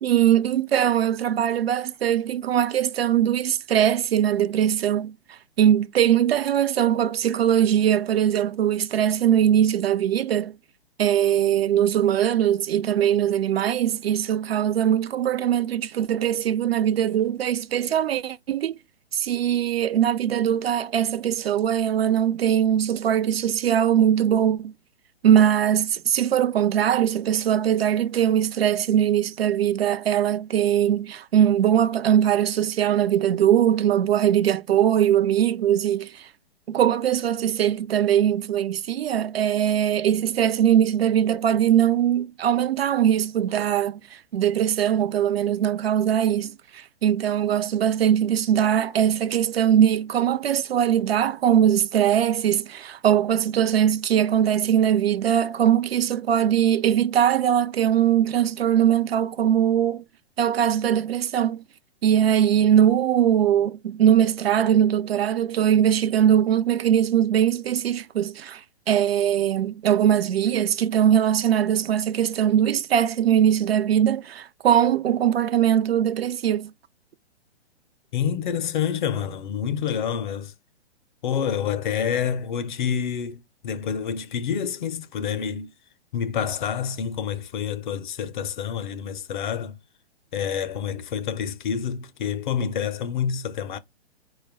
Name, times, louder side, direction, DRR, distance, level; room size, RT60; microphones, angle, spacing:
voice 1, 0.0-10.6 11.0-18.8 19.1-24.7 25.2-36.3 36.7-60.0 60.4-61.6 62.0-76.7, right 10 dB, 65° right, 0.5 m, -21 dB
voice 2, 78.1-80.5 81.2-85.7 86.1-89.8 90.3-93.8, left 8 dB, 45° left, 0.5 m, -28 dB
4.4 x 2.2 x 3.4 m
figure-of-eight pair, 125°, 33 cm